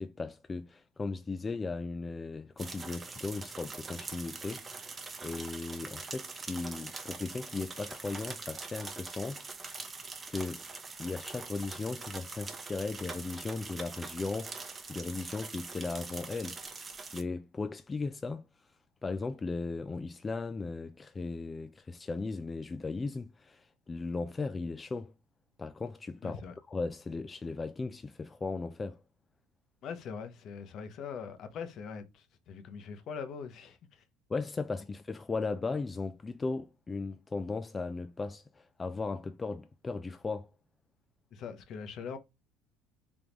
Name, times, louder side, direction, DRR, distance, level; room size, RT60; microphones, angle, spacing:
voice 1, 0.0-9.5 10.3-10.6 11.0-18.7 19.0-25.1 25.6-26.4 26.7-29.0 34.3-40.5, left 3 dB, 25° left, 0.3 m, -37 dB
sound 1, 2.6-17.2, right 4 dB, 25° right, 0.8 m, -43 dB
voice 2, 26.2-26.5 29.8-34.0 41.3-42.2, left 6 dB, 60° left, 0.8 m, -42 dB
3.7 x 3.5 x 2.9 m
supercardioid pair, 80°, 0 cm